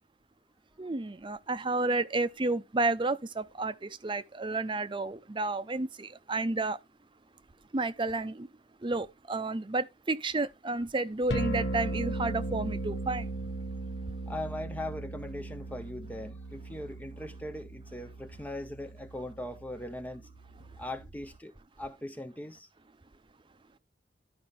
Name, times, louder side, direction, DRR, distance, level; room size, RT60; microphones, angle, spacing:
voice 1, 0.8-6.8 7.7-8.5 8.8-13.3, right 2 dB, 30° right, 0.7 m, -31 dB
sound 1, 11.3-21.3, right 2 dB, 75° left, 1.4 m, -38 dB
voice 2, 14.3-20.3 20.8-22.7, left 1 dB, 10° left, 0.6 m, -40 dB
12.5 x 5.2 x 3.5 m
head